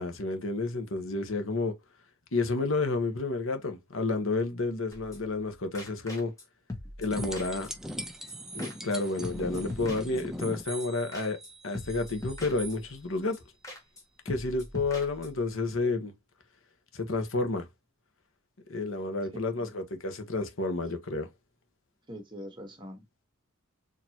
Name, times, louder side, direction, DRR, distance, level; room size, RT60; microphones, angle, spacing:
voice 1, 0.0-1.8 2.3-6.3 7.0-7.7 8.5-13.4 14.2-16.1 16.9-17.7 18.7-21.3, left 3 dB, 60° left, 1.1 m, -30 dB
sound 1, 4.9-5.5 5.7-6.4 6.7-8.0 8.3-8.4 8.6-9.0 9.2-10.5 10.8-10.9 11.1-11.5 11.7-13.0 13.3-13.4 13.6-14.0 14.3-15.5, left 2 dB, 15° left, 1.2 m, -42 dB
sound 2, 7.1-12.8 15.7-15.8, equal, ahead, 0.6 m, -40 dB
voice 2, 19.3-19.8 22.1-23.2, equal, 20° right, 1.3 m, -44 dB
4.4 x 2.9 x 2.8 m
head